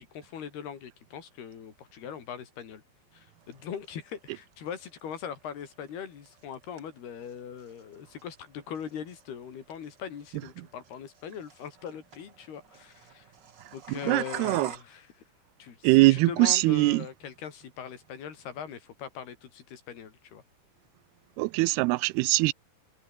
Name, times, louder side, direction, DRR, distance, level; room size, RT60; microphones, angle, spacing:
voice 1, 0.0-2.8 3.1-13.3 13.7-15.2 15.6-20.4, left 8 dB, 75° left, 5.1 m, -41 dB
sound 1, 3.4-14.8, right 7 dB, 45° right, 1.4 m, -49 dB
voice 2, 13.9-14.7 15.8-17.0 21.4-22.5, right 22 dB, 85° right, 2.5 m, -22 dB
omnidirectional pair, 4.7 m